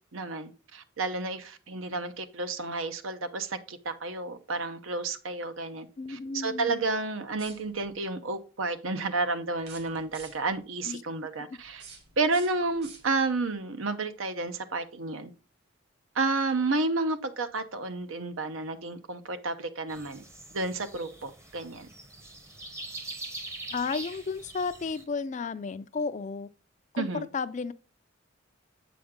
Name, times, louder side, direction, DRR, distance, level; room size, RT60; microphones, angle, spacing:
voice 1, 0.1-11.8 12.2-15.3 16.1-20.2 20.5-21.9 27.0-27.3, right 3 dB, 80° right, 0.8 m, -31 dB
voice 2, 6.0-6.8 10.8-11.0 11.5-11.6 23.7-26.5 26.9-27.7, left 4 dB, 35° left, 0.4 m, -33 dB
sound 1, 7.3-8.0 9.6-10.6 11.6-13.4, right 5 dB, 55° right, 2.0 m, -50 dB
sound 2, 19.9-25.0, right 2 dB, 15° right, 0.7 m, -43 dB
7.8 x 5.1 x 3.6 m
head